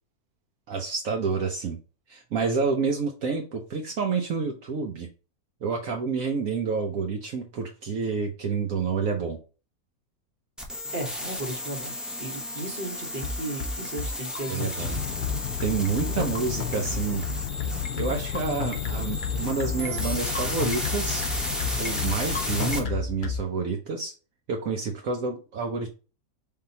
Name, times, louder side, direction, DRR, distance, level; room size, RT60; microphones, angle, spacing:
voice 1, 0.7-1.8 2.1-5.1 5.6-9.4 14.5-15.0 15.6-17.2 18.0-21.3 21.8-24.1 24.5-25.9, right 5 dB, 65° right, 1.1 m, -29 dB
sound 1, 10.6-22.8, left 1 dB, ahead, 0.7 m, -34 dB
voice 2, 10.7-15.0 16.2-16.3, right 2 dB, 35° right, 1.2 m, -36 dB
sound 2, 13.2-23.4, left 4 dB, 45° left, 0.7 m, -31 dB
sound 3, 14.8-22.9, left 10 dB, 85° left, 1.2 m, -33 dB
4.8 x 3.7 x 2.8 m
omnidirectional pair, 1.6 m